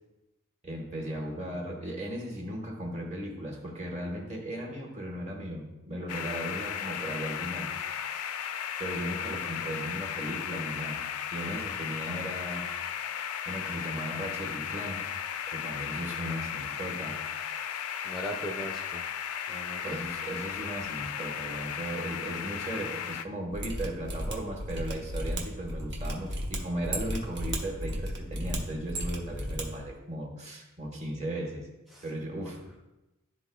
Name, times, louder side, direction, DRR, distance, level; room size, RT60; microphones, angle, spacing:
voice 1, 0.6-7.7 8.1-8.3 8.8-11.0 11.3-12.7 13.4-15.1 15.5-17.2 19.8-31.7 32.0-32.8, right 1 dB, 30° right, 0 dB, 1.4 m, -37 dB
sound 1, 6.1-23.2, left 8 dB, 85° left, 0.4 m, -35 dB
voice 2, 18.0-19.0 19.5-20.0 31.9-32.1 32.4-32.5, equal, ahead, -2 dB, 0.5 m, -39 dB
Mechanisms, 23.5-29.6 29.9-30.0, equal, 50° right, 1.0 m, -34 dB
12.5 x 4.2 x 2.3 m, 0.98 s
head